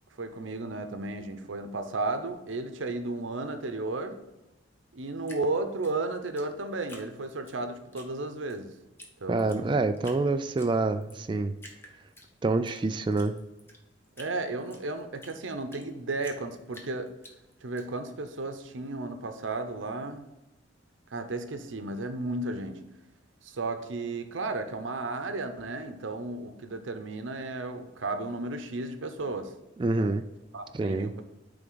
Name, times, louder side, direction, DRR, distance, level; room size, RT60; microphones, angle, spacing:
voice 1, 0.2-4.2 4.9-8.7 9.2-9.8 14.2-17.1 17.6-20.3 21.1-22.8 23.4-29.5 29.9-30.1 30.5-31.2, right 2 dB, 85° right, 0.7 m, -34 dB
Drip, 5.2-7.6 7.9-8.6 9.0-9.1 9.4-10.2 10.6-11.2 11.6-12.8 13.1-15.9 16.2-17.8, left 1 dB, 10° left, 0.9 m, -50 dB
voice 2, 9.3-11.5 12.4-13.4 29.8-30.2 30.7-31.1, right 3 dB, 25° right, 0.3 m, -27 dB
9.1 x 3.5 x 3.9 m
head